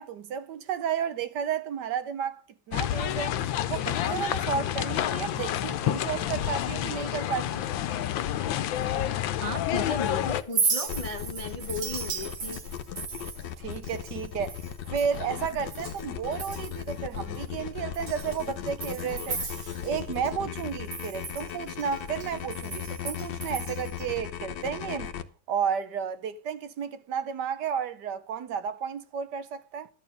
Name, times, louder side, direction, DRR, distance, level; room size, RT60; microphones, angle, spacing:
voice 1, 0.0-2.4 2.7-3.4 3.7-7.7 13.6-14.6 14.9-19.4 19.8-25.1 25.5-29.9, right 7 dB, 65° right, 1.3 m, -32 dB
sound 1, 2.7-10.4, left 11 dB, 85° left, 1.5 m, -29 dB
voice 2, 9.4-12.6, left 2 dB, 30° left, 0.7 m, -35 dB
Chink clink, 10.4-16.0 16.3-16.9 17.3-17.4 17.9-20.3 20.6-24.0, right 5 dB, 85° right, 2.6 m, -35 dB
sound 2, 10.9-25.2, left 9 dB, 70° left, 1.4 m, -37 dB
12.5 x 9.0 x 5.3 m
omnidirectional pair, 2.1 m